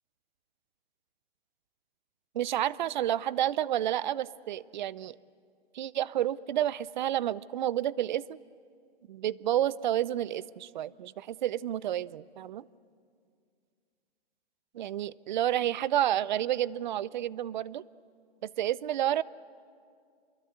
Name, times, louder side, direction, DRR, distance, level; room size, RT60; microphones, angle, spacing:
voice 1, 2.3-5.2 5.7-8.4 9.1-12.6 14.7-17.8 18.6-19.2, right 12 dB, 45° right, 21 dB, 0.6 m, -30 dB
28.5 x 22.5 x 7.9 m, 2.2 s
hypercardioid pair, 150°, 32 cm